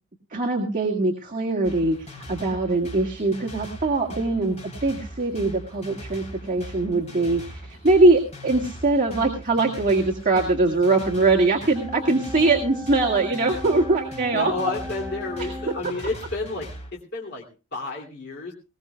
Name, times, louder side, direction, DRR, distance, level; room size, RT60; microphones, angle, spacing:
voice 1, 0.3-14.7 15.4-15.5, right 2 dB, 40° right, 0 dB, 1.9 m, -22 dB
sound 1, 1.6-16.9, equal, 35° left, 3.7 m, -40 dB
sound 2, 11.8-15.8, left 1 dB, ahead, 1.6 m, -37 dB
voice 2, 14.3-18.5, left 3 dB, 55° left, -2 dB, 2.6 m, -31 dB
20.5 x 18.5 x 2.3 m, 0.30 s
head